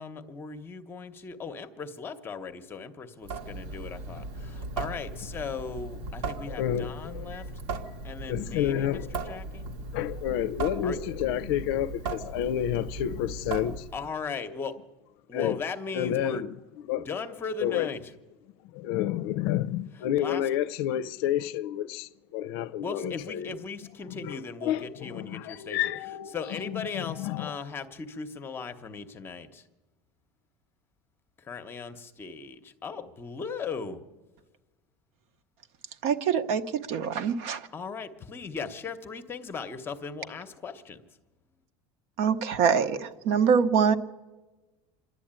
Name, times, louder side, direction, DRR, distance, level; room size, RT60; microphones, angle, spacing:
voice 1, 0.0-7.5 8.0-9.0 9.3-9.7 10.8-11.0 13.9-14.7 15.3-16.5 17.0-18.0 20.2-20.4 22.6-25.8 26.3-29.6 31.5-34.0 37.7-41.0, left 5 dB, 15° left, 0.9 m, -37 dB
Water tap faucet / Sink (filling or washing) / Drip, 3.2-14.1, right 3 dB, 80° right, 2.0 m, -37 dB
voice 2, 6.4-7.4 8.3-9.4 9.9-13.8 15.3-15.6 15.9-16.6 16.9-17.1 17.6-17.9 18.7-23.6 24.1-27.6, left 11 dB, 60° left, 0.6 m, -30 dB
voice 3, 36.0-37.7 42.2-44.0, right 7 dB, 50° right, 1.0 m, -24 dB
26.5 x 11.5 x 8.8 m
cardioid pair, 175°, 13 cm